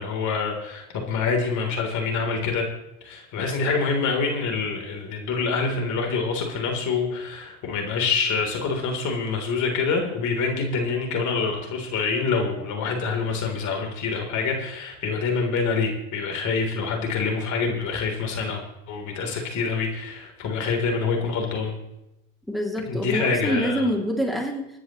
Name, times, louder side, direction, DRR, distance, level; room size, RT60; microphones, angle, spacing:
voice 1, 0.0-2.7 3.0-21.8 22.9-23.9, left 4 dB, 55° left, 2 dB, 3.7 m, -26 dB
voice 2, 22.5-24.7, equal, ahead, 0 dB, 2.8 m, -26 dB
25.0 x 10.0 x 3.2 m, 0.90 s
hypercardioid pair, 90°, 35 cm